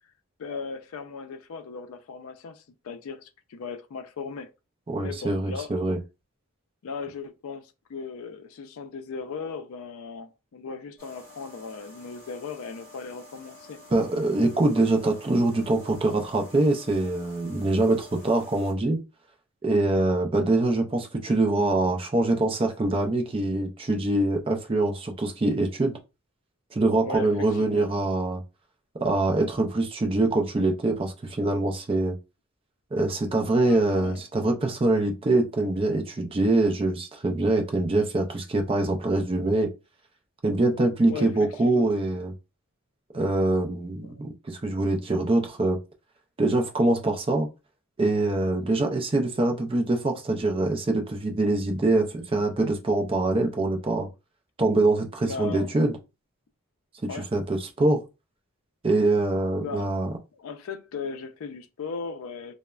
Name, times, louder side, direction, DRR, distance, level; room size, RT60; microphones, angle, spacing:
voice 1, 0.4-4.5 5.0-5.7 6.8-13.8 27.0-27.9 33.6-34.2 41.1-41.9 44.1-44.2 55.3-55.8 57.1-57.3 59.6-59.9 60.4-62.5, left 5 dB, 80° left, 0.4 m, -37 dB
voice 2, 4.9-6.0 13.9-19.0 19.6-26.0 26.7-28.4 29.0-32.1 32.9-39.7 40.4-42.3 43.1-45.8 46.4-47.5 48.0-54.1 54.6-56.0 57.1-58.0 58.8-60.1, right 2 dB, 25° right, 0.4 m, -24 dB
sound 1, 11.0-18.7, left 2 dB, 10° left, 1.6 m, -49 dB
3.1 x 2.0 x 2.3 m
head